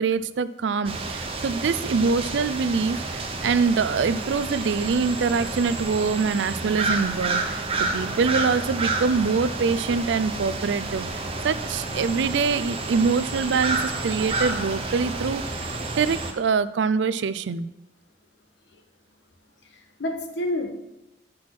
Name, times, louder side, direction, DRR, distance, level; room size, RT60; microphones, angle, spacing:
voice 1, 0.0-11.1 11.4-15.4 15.9-17.7, right 5 dB, 90° right, 16 dB, 0.4 m, -24 dB
sound 1, 0.8-16.3, right 3 dB, 35° right, 0.9 m, -30 dB
voice 2, 19.6-20.7, left 1 dB, 85° left, 4 dB, 1.2 m, -29 dB
6.2 x 6.0 x 6.0 m, 0.94 s
head